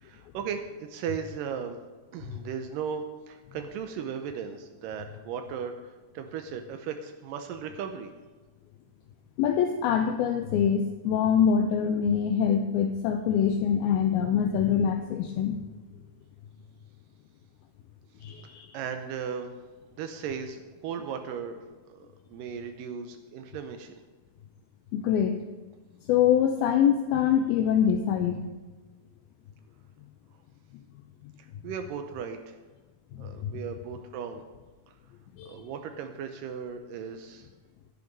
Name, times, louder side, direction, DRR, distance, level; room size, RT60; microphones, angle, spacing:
voice 1, 0.0-1.8 2.1-8.1 18.7-19.5 20.0-21.6 21.9-23.9 31.6-32.6 33.2-34.4 35.5-37.5, right 7 dB, 85° right, 6 dB, 1.9 m, -36 dB
voice 2, 9.4-15.6 18.2-18.8 24.9-25.4 26.1-28.4 30.7-30.8 33.1-33.5 35.4-35.6, left 8 dB, 80° left, 6 dB, 2.3 m, -24 dB
11.5 x 10.5 x 5.4 m, 1.3 s
omnidirectional pair, 4.8 m